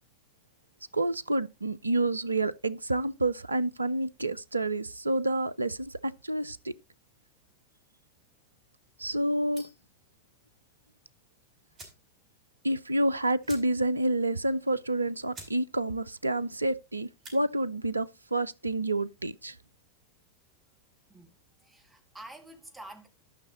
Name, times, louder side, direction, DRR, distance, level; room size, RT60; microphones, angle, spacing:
voice 1, 0.9-6.7 9.0-9.7 12.6-19.6, right 1 dB, 80° right, 0.4 m, -29 dB
sound 1, 9.5-9.9 11.2-11.3 11.7-12.1 12.4-12.5 12.8-12.9 13.4-14.0 14.4-14.5 15.0-15.1 15.3-15.6 15.9-16.3 17.0-17.4, right 2 dB, 30° right, 5.1 m, -48 dB
voice 2, 21.6-23.1, right 1 dB, 10° right, 2.1 m, -48 dB
12.0 x 5.7 x 4.0 m
figure-of-eight pair, 90°, 0 cm